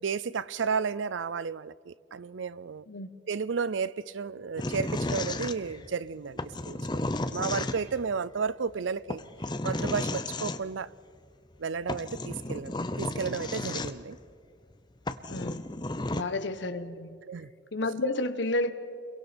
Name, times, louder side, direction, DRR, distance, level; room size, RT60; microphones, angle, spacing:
voice 1, 0.0-2.8 3.3-9.2 9.6-10.9 11.6-14.2 16.1-16.3 17.3-17.5, right 5 dB, 85° right, 0.5 m, -33 dB
sound 1, 4.6-5.9 6.4-8.0 9.1-10.6 11.6-11.7 11.9-14.2 14.7-14.8 15.1-16.2, left 2 dB, 25° left, 0.7 m, -33 dB
voice 2, 15.3-15.7 16.1-17.2 17.7-18.7, left 2 dB, 70° left, 1.2 m, -31 dB
29.5 x 22.5 x 4.4 m
head